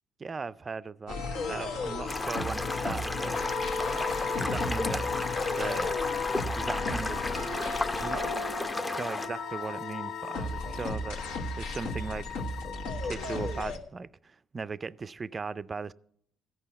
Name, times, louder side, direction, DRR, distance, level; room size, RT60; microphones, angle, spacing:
voice 1, 0.2-1.2 1.5-3.4 3.9-5.1 5.6-6.0 6.5-7.3 7.9-8.3 8.8-11.2 11.6-12.3 13.0-15.9, right 4 dB, 35° right, 0.4 m, -38 dB
sound 1, 1.1-13.8, left 3 dB, 75° left, 1.3 m, -34 dB
sound 2, 2.1-9.3, left 2 dB, 20° left, 0.7 m, -34 dB
sound 3, 3.3-13.7, left 8 dB, 55° left, 0.4 m, -43 dB
14.5 x 5.6 x 8.1 m
hypercardioid pair, 50°, 0 cm